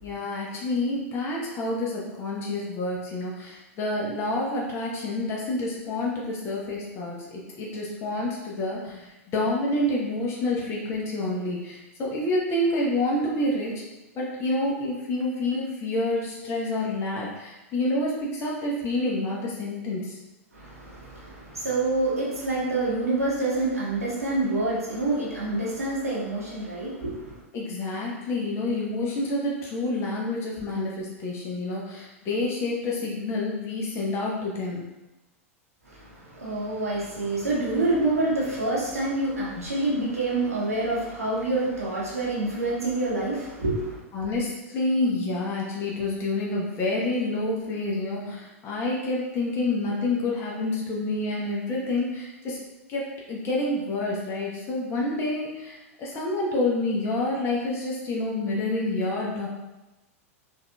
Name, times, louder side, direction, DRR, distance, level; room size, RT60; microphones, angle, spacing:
voice 1, 0.0-13.7 14.1-20.2 27.5-34.8 39.6-39.7 44.1-52.6 52.9-59.5, left 2 dB, 35° left, -4 dB, 0.8 m, -28 dB
voice 2, 20.5-27.4 35.8-44.0, right 2 dB, 90° right, -6 dB, 1.0 m, -27 dB
4.0 x 2.5 x 2.3 m, 1.0 s
figure-of-eight pair, 95°, 8 cm